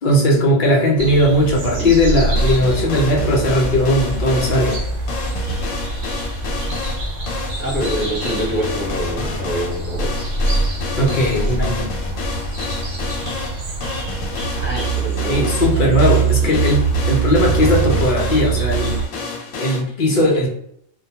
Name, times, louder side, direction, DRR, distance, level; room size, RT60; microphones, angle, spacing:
voice 1, 0.0-4.8 11.0-11.9 15.3-19.0 19.6-20.5, left 1 dB, 55° left, -2 dB, 0.5 m, -18 dB
sound 1, 1.0-19.1, right 4 dB, 70° right, 0.9 m, -23 dB
sound 2, 2.4-19.8, left 4 dB, 85° left, 1.1 m, -30 dB
voice 2, 7.6-10.1 14.5-15.5 16.4-16.6, equal, 10° left, -7 dB, 0.9 m, -26 dB
2.2 x 2.2 x 2.7 m, 0.70 s
omnidirectional pair, 1.4 m